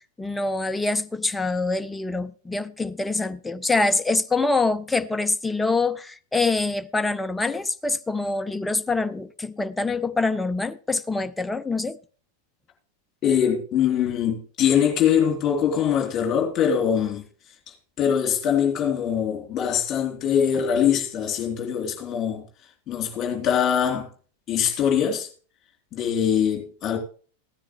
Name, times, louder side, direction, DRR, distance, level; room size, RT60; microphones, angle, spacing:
voice 1, 0.2-12.0, left 3 dB, 10° left, 0.6 m, -25 dB
voice 2, 13.2-17.2 18.0-22.5 22.9-24.1 24.5-25.3 25.9-27.0, left 8 dB, 30° left, 3.2 m, -23 dB
15.5 x 9.8 x 3.2 m
figure-of-eight pair, 90°, 0 cm